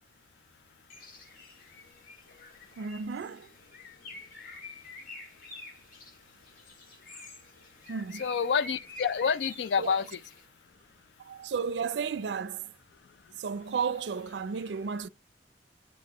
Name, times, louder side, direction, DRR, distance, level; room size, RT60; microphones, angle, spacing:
Bird, 0.9-10.5, left 2 dB, 50° left, 1.6 m, -48 dB
voice 1, 2.8-3.5 7.9-8.2 9.8-10.0 11.2-12.7 13.4-15.1, right 6 dB, 80° right, 0.4 m, -33 dB
voice 2, 8.2-10.2, left 6 dB, 80° left, 0.4 m, -28 dB
9.6 x 3.5 x 4.0 m
head